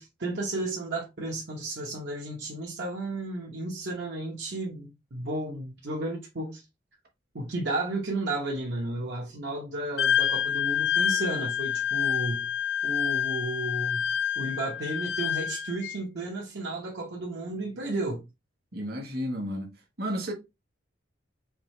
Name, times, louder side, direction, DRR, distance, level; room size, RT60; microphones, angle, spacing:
voice 1, 0.0-6.6 7.3-12.5 12.8-14.1 14.4-18.2, right 2 dB, 70° right, 0.9 m, -33 dB
Wind instrument woodwind instrument, 10.0-16.0, left 8 dB, 65° left, 0.4 m, -28 dB
voice 2, 18.7-19.7 20.0-20.3, equal, 55° right, 1.3 m, -32 dB
4.8 x 2.7 x 3.1 m
head